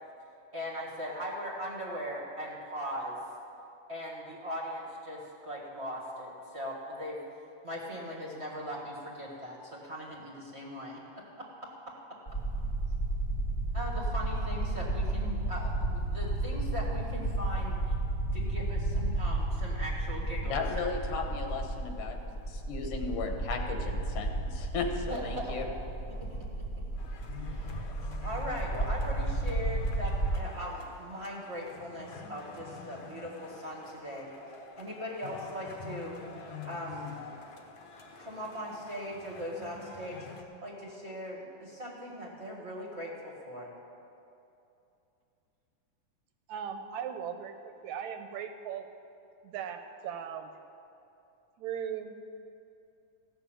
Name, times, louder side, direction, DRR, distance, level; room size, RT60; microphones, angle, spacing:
voice 1, 0.5-3.2 3.9-7.2 7.6-11.5 13.7-18.0 18.3-20.9 24.9-25.6 26.1-26.6 27.4-27.9 28.2-34.3 34.8-36.2 36.7-37.1 38.2-40.2 40.6-43.7, equal, 30° right, -3 dB, 1.4 m, -39 dB
sound 1, 12.3-30.4, right 2 dB, 30° left, 0.8 m, -32 dB
voice 2, 20.4-25.6, left 4 dB, 90° left, 4 dB, 2.8 m, -36 dB
sound 2, 27.0-40.4, left 5 dB, 55° left, 1.5 m, -47 dB
voice 3, 46.5-48.9 49.4-50.5 51.6-52.1, right 8 dB, 75° right, 7 dB, 1.9 m, -38 dB
15.0 x 6.9 x 8.8 m, 2.7 s
omnidirectional pair, 3.5 m